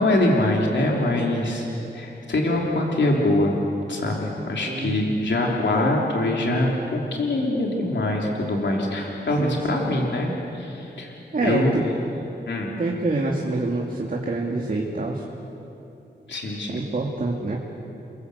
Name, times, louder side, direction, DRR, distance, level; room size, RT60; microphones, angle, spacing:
voice 1, 0.0-1.6 1.9-3.6 3.9-11.1 11.4-11.7 12.4-12.7 16.3-16.9, left 1 dB, 90° left, -1 dB, 3.4 m, -23 dB
voice 2, 4.6-5.0 9.4-9.6 11.3-11.8 12.8-15.2 16.7-17.6, right 3 dB, 50° right, -1 dB, 2.3 m, -26 dB
29.5 x 22.0 x 8.1 m, 2.9 s
wide cardioid pair, 115°, 18 cm